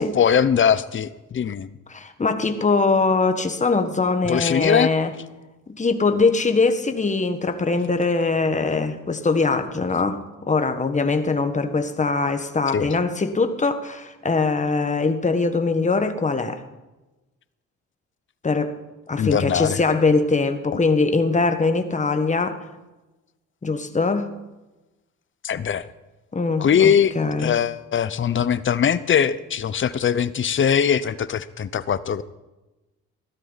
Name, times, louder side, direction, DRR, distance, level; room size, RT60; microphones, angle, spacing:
voice 1, 0.0-1.7 4.3-4.9 12.7-12.9 19.2-19.8 25.4-25.8 26.6-27.1 27.4-32.2, left 8 dB, 40° left, 16 dB, 0.7 m, -21 dB
voice 2, 1.9-5.1 5.7-10.2 10.5-16.6 18.4-18.7 19.1-22.6 23.6-24.3 26.3-27.6, left 3 dB, 25° left, 8 dB, 1.4 m, -22 dB
16.0 x 13.0 x 4.1 m, 1.1 s
cardioid pair, 90°, 30 cm